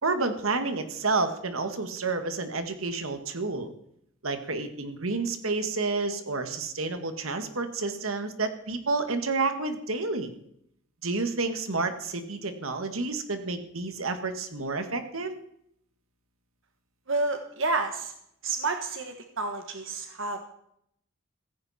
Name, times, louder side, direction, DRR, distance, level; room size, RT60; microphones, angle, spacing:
voice 1, 0.0-3.7 4.2-10.3 11.0-15.3, right 3 dB, 90° right, 8 dB, 1.9 m, -30 dB
voice 2, 17.1-18.1 18.4-20.5, right 3 dB, 70° right, 5 dB, 1.5 m, -30 dB
16.0 x 15.5 x 4.4 m, 0.72 s
head